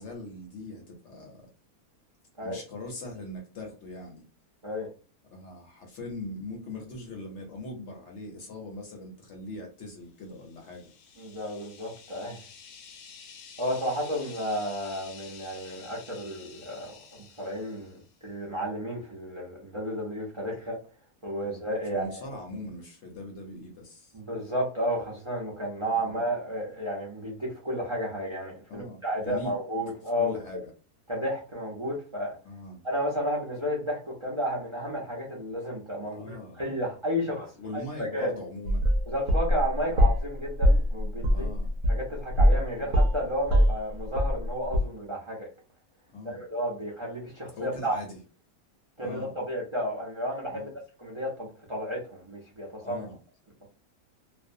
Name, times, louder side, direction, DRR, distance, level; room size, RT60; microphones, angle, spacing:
voice 1, 0.0-1.5 2.4-4.2 5.3-10.9 17.7-17.8 21.4-21.6 21.9-24.1 25.9-26.1 28.7-29.6 30.2-30.7 32.4-32.8 36.1-36.6 37.6-38.9 39.9-40.1 41.3-41.7 42.8-43.0 46.1-46.4 47.6-48.2 49.0-49.3 50.5-50.7 52.8-53.2, left 2 dB, 60° left, 1 dB, 0.8 m, -41 dB
sound 1, 10.3-18.1, left 6 dB, 85° left, 1.1 m, -50 dB
voice 2, 11.2-12.4 13.6-20.8 21.2-22.2 24.1-30.4 31.1-32.4 32.8-38.3 39.1-41.5 41.9-45.5 46.2-48.0 49.0-50.7 51.0-53.0, equal, 45° right, -3 dB, 0.4 m, -32 dB
sound 2, 38.7-40.3 40.6-42.7 42.9-44.5 44.7-44.8, equal, 70° right, 0.9 m, -22 dB
2.5 x 2.1 x 2.6 m, 0.36 s
omnidirectional pair, 1.6 m